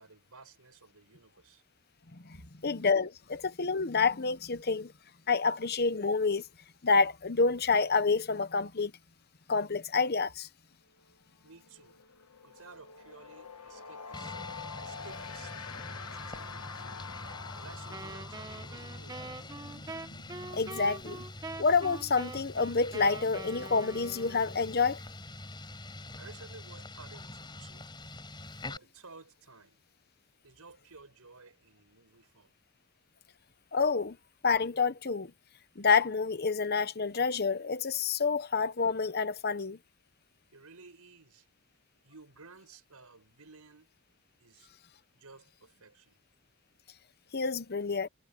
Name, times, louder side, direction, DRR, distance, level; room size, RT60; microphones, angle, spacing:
voice 1, 0.0-1.6 2.3-2.5 11.4-12.0 12.4-15.5 16.0-16.9 17.6-19.6 26.2-27.9 28.6-29.8 30.4-32.5 40.5-41.5 42.0-43.9 44.4-44.7 45.1-46.2, right 4 dB, 85° right, 5.1 m, -54 dB
voice 2, 2.6-4.9 5.3-6.4 6.8-8.9 9.5-10.5 20.5-21.2 21.6-25.0 33.7-34.2 34.4-35.3 35.8-39.8 47.3-48.1, left 4 dB, 45° left, 1.0 m, -28 dB
sound 1, 11.0-11.2 11.4-22.0, left 5 dB, 85° left, 1.7 m, -47 dB
sound 2, 14.1-28.8, left 2 dB, 20° left, 5.3 m, -45 dB
Wind instrument woodwind instrument, 17.9-24.7, right 2 dB, 15° right, 1.1 m, -44 dB
head